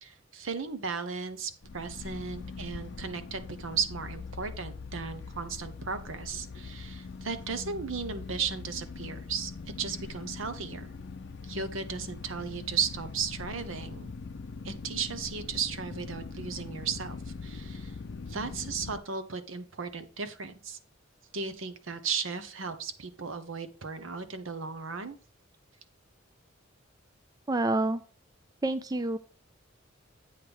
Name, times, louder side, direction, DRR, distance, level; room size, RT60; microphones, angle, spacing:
voice 1, 0.0-10.9 11.4-14.1 14.6-18.0 18.3-20.8 21.3-25.2, right 5 dB, 75° right, 10 dB, 0.9 m, -35 dB
sound 1, 1.6-19.0, left 4 dB, 60° left, 0.5 m, -42 dB
voice 2, 27.5-28.0 28.6-29.2, right 2 dB, 20° right, 11 dB, 0.3 m, -27 dB
8.5 x 3.4 x 6.2 m, 0.38 s
head